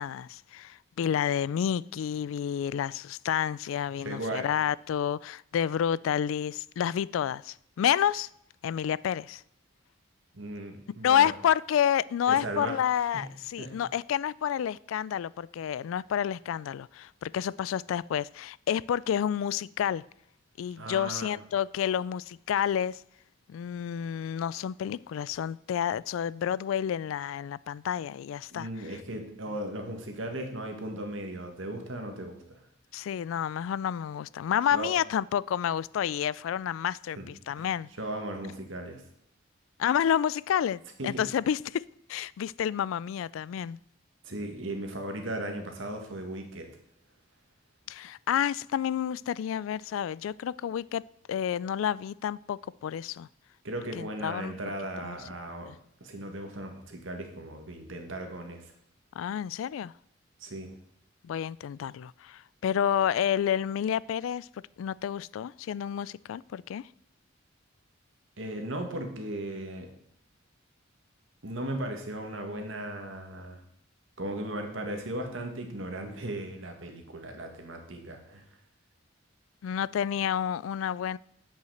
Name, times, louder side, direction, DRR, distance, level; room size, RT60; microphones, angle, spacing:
voice 1, 0.0-8.3 8.6-9.4 11.0-20.0 20.6-23.0 23.5-28.7 32.9-37.9 39.8-41.8 42.1-43.8 47.9-51.0 51.3-53.3 54.0-54.5 55.0-55.2 55.6-55.7 59.2-59.9 61.2-64.5 64.8-66.8 79.6-81.2, left 9 dB, 80° left, 0.3 m, -29 dB
voice 2, 4.0-4.5 10.3-11.3 12.3-12.8 13.1-13.3 13.6-13.7 20.8-21.4 28.5-32.6 34.7-34.9 37.2-37.3 37.6-37.7 38.0-39.0 41.0-41.2 44.2-46.7 53.6-55.7 56.0-58.7 60.4-60.7 68.4-69.9 71.4-73.6 74.2-78.4, right 1 dB, 70° right, 1.8 m, -37 dB
8.0 x 5.6 x 7.8 m
head